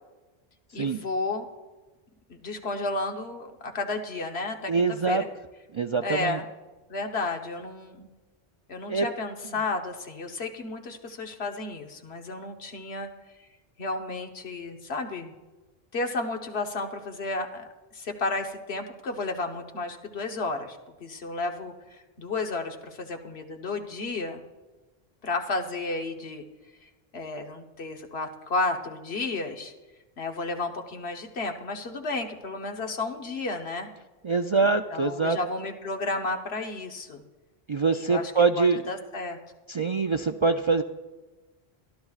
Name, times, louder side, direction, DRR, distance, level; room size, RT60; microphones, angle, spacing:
voice 1, 0.7-1.4 2.3-5.3 6.0-6.4 6.9-8.1 8.7-13.1 13.8-15.3 15.9-24.4 25.2-26.4 26.8-29.7 30.2-33.9 34.6-37.2 37.9-38.3 38.6-39.4, left 3 dB, 90° left, 4 dB, 1.4 m, -32 dB
voice 2, 4.7-5.2 5.7-6.4 8.9-9.1 34.2-35.4 37.7-38.8 39.7-40.8, right 4 dB, 55° right, 6 dB, 0.3 m, -24 dB
23.5 x 12.5 x 2.4 m, 1.2 s
omnidirectional pair, 1.0 m